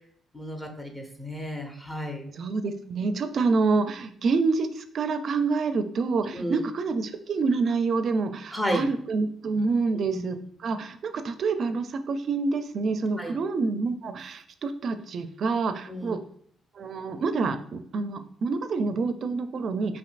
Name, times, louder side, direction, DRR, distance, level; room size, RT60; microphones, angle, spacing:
voice 1, 0.3-2.3 6.3-6.6 8.5-8.9 10.1-10.2 13.2-13.4 15.9-16.1, equal, 15° left, 3 dB, 0.6 m, -32 dB
voice 2, 2.3-16.2 16.8-20.0, right 4 dB, 55° right, 9 dB, 0.4 m, -27 dB
5.1 x 2.7 x 2.5 m, 0.63 s
cardioid pair, 90°, 0 cm